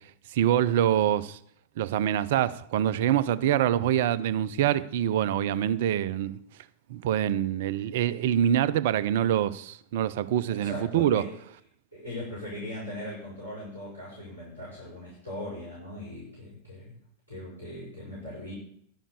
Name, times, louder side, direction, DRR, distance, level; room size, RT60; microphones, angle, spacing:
voice 1, 0.3-1.4 1.8-6.4 6.9-11.2, right 11 dB, 55° right, 0.6 m, -25 dB
voice 2, 10.5-11.4 11.9-17.0 17.3-18.5, left 1 dB, 85° left, 6.5 m, -39 dB
11.0 x 7.3 x 7.0 m
figure-of-eight pair, 90°, 0 cm